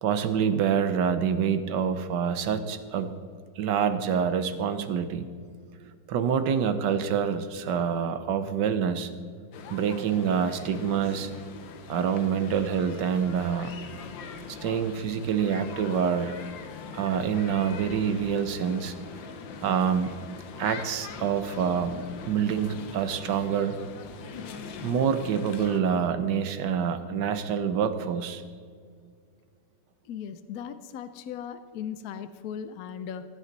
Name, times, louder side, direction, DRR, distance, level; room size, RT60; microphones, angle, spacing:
voice 1, 0.0-3.1 3.6-5.3 5.8-9.1 9.7-11.3 11.9-13.7 14.5-16.4 16.9-18.9 19.6-20.1 20.6-23.8 24.8-28.4, right 7 dB, 70° right, 11 dB, 1.4 m, -26 dB
sound 1, 9.5-25.8, left 5 dB, 90° left, 1.7 m, -42 dB
voice 2, 30.0-33.3, left 8 dB, 70° left, 11 dB, 0.9 m, -38 dB
16.0 x 11.0 x 4.0 m, 2.1 s
omnidirectional pair, 2.0 m